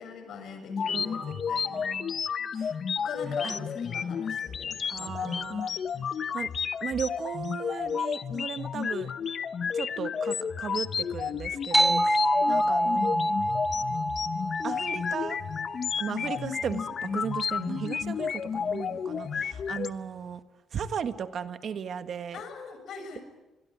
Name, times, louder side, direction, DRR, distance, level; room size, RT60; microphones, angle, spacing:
voice 1, 0.0-1.9 3.0-5.4 12.4-12.7 16.2-16.4 22.3-23.2, left 5 dB, 70° left, 8 dB, 6.8 m, -42 dB
sound 1, 0.7-19.9, left 7 dB, 50° left, 0.9 m, -32 dB
voice 2, 0.9-1.4 1.7-2.1 2.6-2.7 3.4-3.5 4.9-5.7 6.3-6.5 6.8-9.1 9.7-13.3 14.6-15.4 16.0-20.4 20.7-22.4, right 7 dB, 60° right, 10 dB, 1.7 m, -36 dB
sound 2, 11.7-16.7, equal, 15° right, 1.2 m, -27 dB
25.5 x 22.0 x 10.0 m, 1.1 s
cardioid pair, 90°, 0 cm